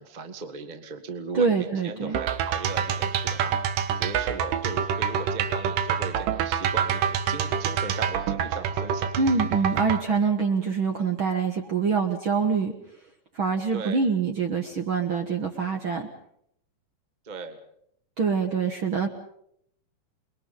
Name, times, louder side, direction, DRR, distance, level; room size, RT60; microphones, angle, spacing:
voice 1, 0.0-9.2 13.7-14.0 17.2-17.6, right 4 dB, 20° right, 7 dB, 1.2 m, -37 dB
voice 2, 1.3-2.2 9.2-12.7 13.3-16.1 18.2-19.1, right 5 dB, 50° right, 5 dB, 1.7 m, -25 dB
sound 1, 2.1-10.0, right 8 dB, 80° right, 2.9 m, -27 dB
29.0 x 22.0 x 5.4 m, 0.71 s
omnidirectional pair, 3.8 m